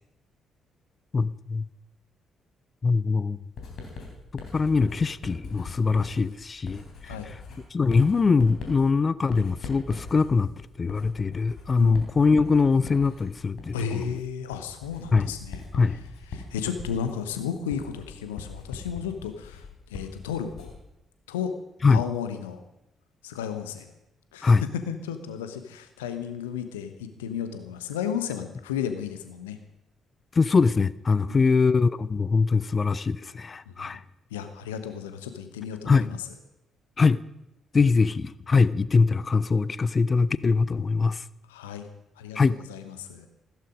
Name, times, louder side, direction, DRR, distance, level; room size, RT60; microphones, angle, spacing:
voice 1, 1.1-1.7 2.8-3.4 4.5-7.1 7.7-10.5 10.8-14.1 15.1-15.3 15.7-16.0 21.8-22.0 24.4-24.6 30.4-34.0 35.9-36.2 37.0-37.2 37.7-41.2 42.3-42.6, left 4 dB, 35° left, 18 dB, 0.5 m, -22 dB
Writing, 3.6-20.9, left 4 dB, 55° left, 3.7 m, -41 dB
voice 2, 13.7-15.6 16.3-20.7 21.3-21.5 21.9-22.6 23.2-23.9 24.3-29.6 31.3-31.4 33.7-33.9 34.3-36.2 41.5-41.9 42.2-42.4 42.7-43.3, left 8 dB, 75° left, 9 dB, 1.1 m, -33 dB
15.5 x 14.0 x 5.1 m, 0.88 s
figure-of-eight pair, 40°, 0 cm